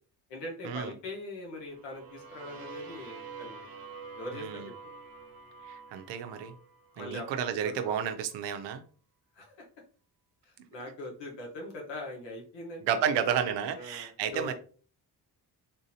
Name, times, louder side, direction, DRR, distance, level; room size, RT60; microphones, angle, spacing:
voice 1, 0.3-3.6 4.2-4.7 7.0-7.3 7.6-7.7 9.3-9.5 10.4-13.4 13.7-14.5, left 1 dB, 85° left, 0 dB, 1.2 m, -41 dB
sound 1, 1.6-7.5, right 5 dB, 60° right, 0.9 m, -47 dB
voice 2, 4.3-4.7 5.6-6.5 7.0-8.8 12.8-14.5, right 8 dB, 90° right, 7 dB, 0.6 m, -31 dB
3.8 x 2.6 x 2.7 m, 0.40 s
cardioid pair, 95°, 41 cm